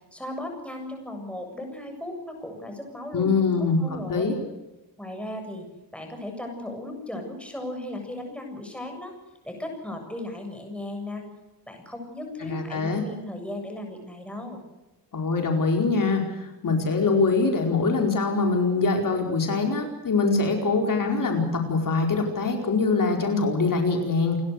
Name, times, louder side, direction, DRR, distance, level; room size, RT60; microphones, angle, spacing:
voice 1, 0.1-3.5 3.8-4.4 5.0-5.7 5.9-9.1 9.4-11.2 11.7-14.6, left 1 dB, 5° left, 3 dB, 7.5 m, -36 dB
voice 2, 3.1-4.3 12.5-13.1 15.1-24.4, left 4 dB, 55° left, 3 dB, 4.7 m, -23 dB
29.5 x 22.0 x 6.6 m, 1.0 s
wide cardioid pair, 165°, 38 cm